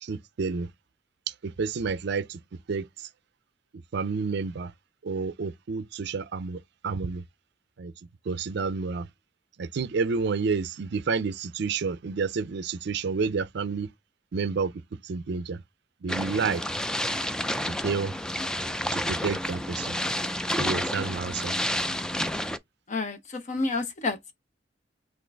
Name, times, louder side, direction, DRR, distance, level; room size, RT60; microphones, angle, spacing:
voice 1, 0.0-0.7 1.4-2.4 2.7-3.1 3.9-4.7 5.0-7.2 7.8-7.9 8.3-9.1 9.6-13.9 14.3-14.7 15.0-15.6 16.0-16.6 17.8-18.1 18.9-20.0 20.6-21.5, right 5 dB, 65° right, 0.5 m, -29 dB
sound 1, 16.1-22.6, left 1 dB, 5° left, 0.3 m, -30 dB
voice 2, 22.9-24.3, left 3 dB, 40° left, 0.7 m, -30 dB
6.1 x 2.5 x 3.4 m
head